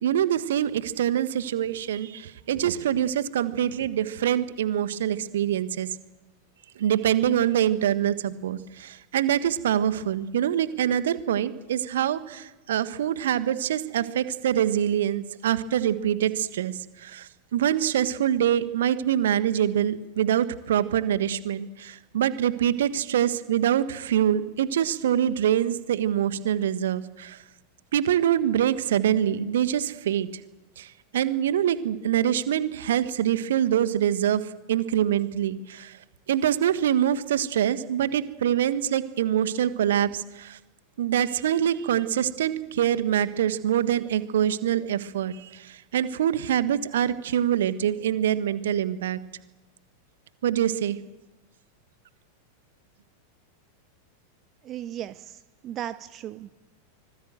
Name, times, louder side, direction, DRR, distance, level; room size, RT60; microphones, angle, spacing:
voice 1, 0.0-5.9 6.8-27.4 27.9-30.3 30.8-34.4 34.7-36.0 36.3-40.6 41.0-49.2 50.4-51.0, right 10 dB, 60° right, 13 dB, 1.5 m, -25 dB
voice 2, 54.6-56.5, right 11 dB, 30° right, 14 dB, 0.9 m, -36 dB
25.0 x 20.5 x 7.8 m, 1.0 s
figure-of-eight pair, 90°, 0 cm